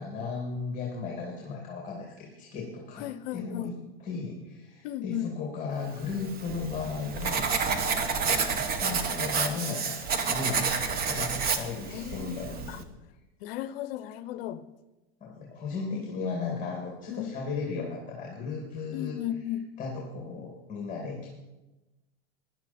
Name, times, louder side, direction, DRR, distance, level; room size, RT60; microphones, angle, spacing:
voice 1, 0.0-10.0 10.2-12.8 15.2-19.2 19.8-21.3, left 4 dB, 25° left, 2.4 m, -36 dB
voice 2, 3.0-3.7 4.8-5.3 11.9-12.8 13.4-14.6 17.1-17.3 18.9-19.7, left 12 dB, 60° left, 0.7 m, -35 dB
Writing, 6.1-12.8, right 5 dB, 30° right, 1.1 m, -30 dB
15.0 x 10.5 x 4.3 m
supercardioid pair, 135°, 32 cm